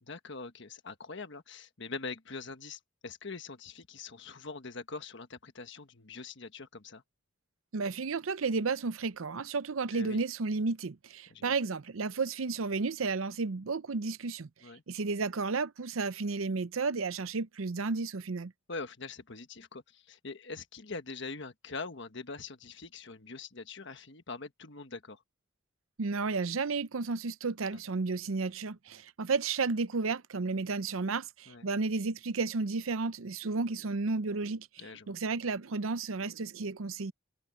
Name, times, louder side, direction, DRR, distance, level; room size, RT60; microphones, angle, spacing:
voice 1, 0.0-7.0 9.9-10.2 11.3-11.6 14.6-14.8 18.7-25.2 27.6-27.8 31.5-31.7 34.8-35.1, left 4 dB, 60° left, 1.4 m, -43 dB
voice 2, 7.7-14.5 14.9-18.5 26.0-34.7 35.1-37.1, right 4 dB, 90° right, 0.7 m, -32 dB
head